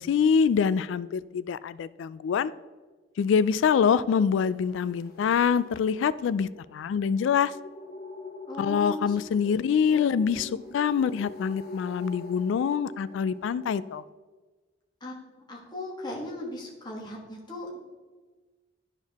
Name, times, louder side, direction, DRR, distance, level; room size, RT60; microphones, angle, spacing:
voice 1, 0.0-2.5 3.2-7.5 8.6-14.0, left 7 dB, 80° left, 17 dB, 0.3 m, -25 dB
sound 1, 4.1-14.0, left 2 dB, 55° left, 0.8 m, -45 dB
voice 2, 8.5-9.2 9.4-9.6 9.9-10.8 15.0-15.2 15.5-17.8, left 1 dB, 25° left, -3 dB, 1.6 m, -38 dB
11.5 x 4.5 x 3.5 m, 1.3 s
head